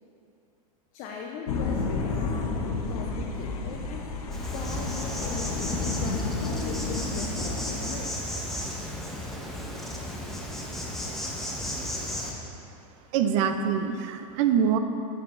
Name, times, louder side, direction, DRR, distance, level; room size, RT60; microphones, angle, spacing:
voice 1, 0.9-2.5 2.9-4.1 4.4-8.1, left 5 dB, 45° left, 0 dB, 0.6 m, -39 dB
sound 1, 1.5-8.1, left 3 dB, 90° left, 0.8 m, -31 dB
Zipper (clothing), 4.0-8.3 8.8-8.9 9.1-9.2 9.4-9.8, equal, 20° right, 1.3 m, -50 dB
Insect, 4.3-12.3, equal, ahead, 0.9 m, -33 dB
voice 2, 13.1-14.8, right 8 dB, 55° right, 8 dB, 0.5 m, -24 dB
7.1 x 7.1 x 2.5 m, 2.6 s
hypercardioid pair, 115°, 18 cm